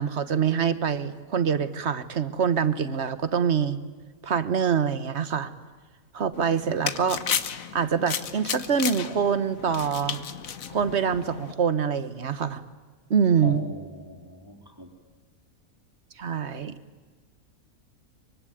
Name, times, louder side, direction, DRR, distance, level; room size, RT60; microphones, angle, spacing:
voice 1, 0.0-3.8 4.2-5.5 6.1-7.2 7.7-10.2 10.7-12.6 13.1-13.6 16.2-16.7, right 7 dB, 50° right, 13 dB, 1.4 m, -25 dB
sound 1, 6.3-11.5, left 8 dB, 75° left, 1.5 m, -33 dB
voice 2, 13.4-14.9, equal, 15° right, 3 dB, 3.7 m, -40 dB
24.5 x 24.0 x 9.3 m, 1.5 s
omnidirectional pair, 1.5 m